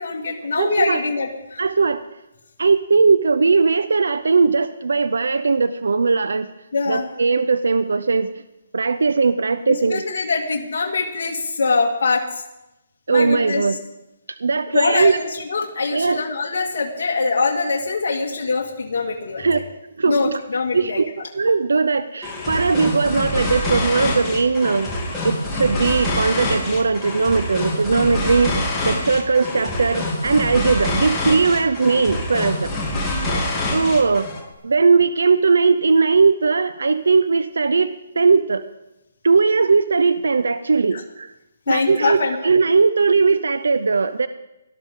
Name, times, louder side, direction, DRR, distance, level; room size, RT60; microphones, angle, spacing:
voice 1, 0.0-1.6 6.7-7.1 9.7-12.4 13.1-13.6 14.7-19.6 20.1-21.0 33.1-33.4 40.9-41.0 41.7-42.4, left 4 dB, 65° left, -1 dB, 1.9 m, -23 dB
voice 2, 0.6-1.0 1.6-2.0 2.6-6.5 6.9-8.3 8.7-10.0 13.1-13.8 14.4-15.2 15.9-16.2 19.4-19.6 20.0-20.3 20.7-21.0 21.3-24.9 25.2-28.5 28.8-32.7 33.7-34.3 34.6-38.6 39.2-41.3 41.7-44.3, right 4 dB, 85° right, 12 dB, 0.6 m, -19 dB
sound 1, 22.2-34.5, left 1 dB, 10° left, 2.8 m, -25 dB
18.5 x 12.5 x 3.8 m, 0.92 s
hypercardioid pair, 155°, 0 cm